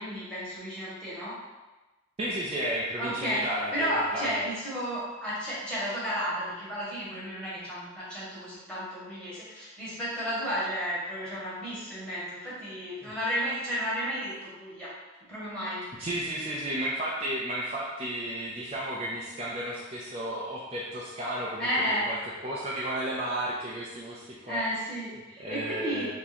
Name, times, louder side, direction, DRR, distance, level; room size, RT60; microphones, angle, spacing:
voice 1, 0.0-1.4 3.0-3.4 3.7-14.9 15.3-15.8 21.6-22.1 24.4-26.1, equal, 5° left, -10 dB, 1.4 m, -32 dB
voice 2, 2.2-4.3 13.0-13.1 16.0-22.2 22.4-24.6 25.4-26.1, right 1 dB, 30° right, -6 dB, 0.4 m, -33 dB
3.6 x 2.9 x 4.1 m, 1.1 s
head